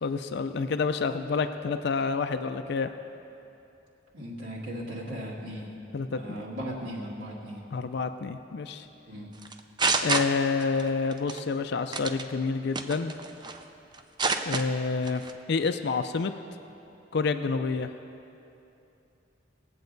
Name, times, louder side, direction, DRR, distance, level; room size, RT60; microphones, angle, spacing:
voice 1, 0.0-2.9 5.9-6.4 7.7-8.9 10.0-13.1 14.5-15.2 15.5-16.3 17.1-17.9, left 4 dB, 60° left, 8 dB, 0.4 m, -28 dB
voice 2, 4.1-5.7 6.1-7.6 9.1-9.3, equal, 65° right, -6 dB, 1.9 m, -37 dB
sound 1, 9.4-10.8 11.1-11.4 11.9-12.2 12.7-13.6 13.9-14.6 15.0-15.3, right 4 dB, 25° right, 0.5 m, -27 dB
19.5 x 8.0 x 4.0 m, 2.8 s
head